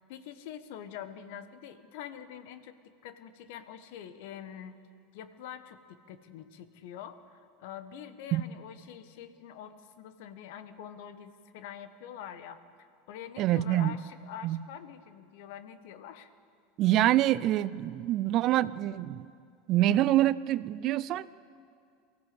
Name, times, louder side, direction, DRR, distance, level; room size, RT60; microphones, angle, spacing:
voice 1, 0.0-4.7 5.1-5.8 6.1-16.3, left 9 dB, 65° left, 11 dB, 1.3 m, -45 dB
voice 2, 13.4-13.9 14.4-14.6 16.8-19.3 19.7-21.3, right 13 dB, 50° right, 17 dB, 0.6 m, -26 dB
23.0 x 15.0 x 8.0 m, 2.3 s
hypercardioid pair, 80°, 0 cm